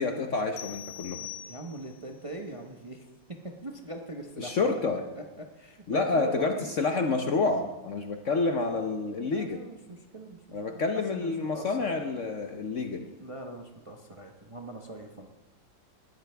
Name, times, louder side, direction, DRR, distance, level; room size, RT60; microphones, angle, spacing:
voice 1, 0.0-1.2 4.4-5.0 5.9-9.6 10.5-13.1, left 3 dB, 55° left, 5 dB, 0.9 m, -28 dB
sound 1, 0.6-2.1, left 11 dB, 85° left, 1.5 m, -42 dB
voice 2, 1.1-4.8 5.2-6.7 9.2-11.9 13.2-15.3, right 2 dB, 25° right, 2 dB, 0.7 m, -42 dB
20.0 x 13.0 x 3.4 m, 1.1 s
omnidirectional pair, 2.0 m